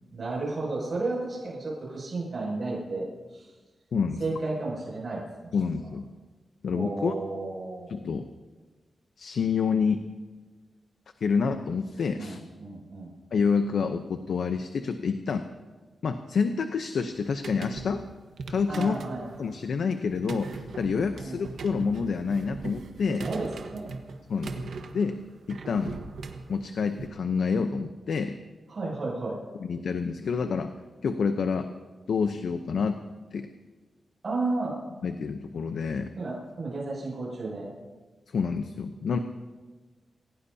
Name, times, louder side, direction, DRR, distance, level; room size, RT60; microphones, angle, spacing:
voice 1, 0.1-3.1 3.3-3.5 4.2-5.5 6.7-7.9 12.2-13.1 18.7-19.3 21.1-21.4 23.2-23.9 28.7-29.4 34.2-34.8 36.2-37.7, right 3 dB, 45° right, -5 dB, 6.8 m, -32 dB
voice 2, 3.9-4.4 5.5-6.1 6.6-7.1 7.9-8.3 9.2-10.0 11.2-12.4 13.3-15.4 16.0-18.0 18.5-19.0 19.4-23.3 24.3-24.6 24.9-25.2 25.5-26.0 26.5-28.4 29.6-30.7 31.0-31.7 32.1-33.0 33.3-33.5 35.0-36.1 38.3-39.2, left 5 dB, 75° left, 7 dB, 0.8 m, -28 dB
sound 1, 17.1-27.1, right 4 dB, 90° right, 1.3 m, -40 dB
28.0 x 17.0 x 2.8 m, 1.3 s
wide cardioid pair, 140°, 0 cm